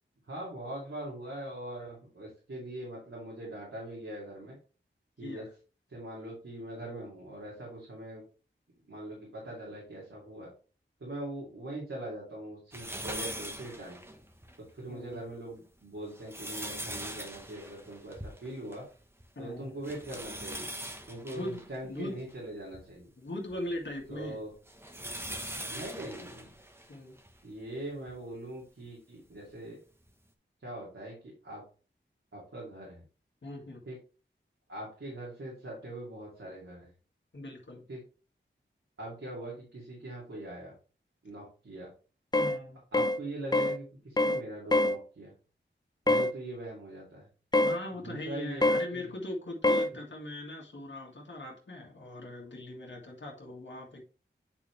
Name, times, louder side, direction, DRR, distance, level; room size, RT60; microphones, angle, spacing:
voice 1, 0.3-4.6 5.2-5.5 5.9-8.2 8.9-10.5 11.0-14.0 14.7-18.9 19.4-20.7 21.1-23.1 24.1-24.5 25.7-26.5 27.4-29.8 30.6-31.6 32.3-33.0 33.9-34.0 34.7-36.9 37.9-38.0 39.0-40.7 41.2-41.9 42.9-45.3 46.1-47.3 48.0-49.1, right 1 dB, 85° right, 2.5 m, -42 dB
sound 1, 12.7-14.6 15.1-15.2 15.9-18.9 19.2-19.3 19.8-22.8 23.5-27.4 28.1-28.2 29.5-29.6, right 1 dB, 10° right, 1.1 m, -42 dB
voice 2, 14.9-15.2 19.3-19.7 21.3-22.2 23.2-24.4 26.9-27.1 33.4-33.8 37.3-37.8 42.3-42.8 47.6-54.0, left 1 dB, 65° left, 1.7 m, -40 dB
sound 2, 42.3-42.6 42.9-43.2 43.5-43.8 44.2-44.4 44.7-45.0 46.1-46.3 47.5-47.8 48.6-48.9 49.6-49.9, left 2 dB, 20° left, 0.5 m, -25 dB
8.6 x 4.5 x 3.2 m
wide cardioid pair, 40°, 21 cm